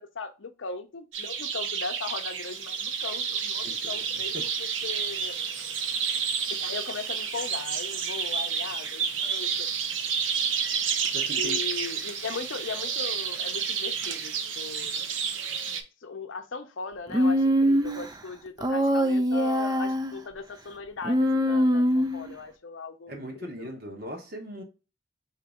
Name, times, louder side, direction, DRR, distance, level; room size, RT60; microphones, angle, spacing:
voice 1, 0.0-5.3 6.5-10.0 11.3-15.1 16.0-23.7, left 4 dB, 70° left, 0.6 m, -38 dB
sound 1, 1.1-15.8, right 6 dB, 65° right, 0.7 m, -30 dB
voice 2, 11.1-11.6 23.1-24.6, equal, 50° right, 1.0 m, -38 dB
Human voice, 17.1-18.1 18.6-20.2 21.0-22.3, equal, 20° right, 0.4 m, -23 dB
3.9 x 2.8 x 3.5 m
head